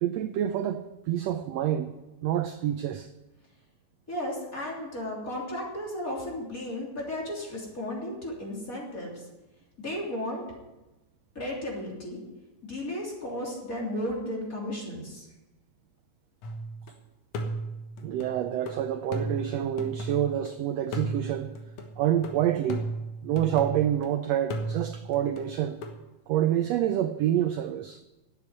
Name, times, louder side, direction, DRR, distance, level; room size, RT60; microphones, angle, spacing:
voice 1, 0.0-1.9 2.2-3.1 18.0-21.5 22.0-22.8 23.2-25.8 26.3-28.0, right 11 dB, 75° right, 1.5 m, -27 dB
voice 2, 4.1-9.2 9.8-10.4 11.3-12.2 12.6-15.3, left 1 dB, 25° left, 3.4 m, -34 dB
sound 1, 16.4-16.9 17.3-20.5 20.9-24.1 24.5-26.0, right 1 dB, 70° left, 2.6 m, -35 dB
12.0 x 8.6 x 9.8 m
omnidirectional pair, 3.5 m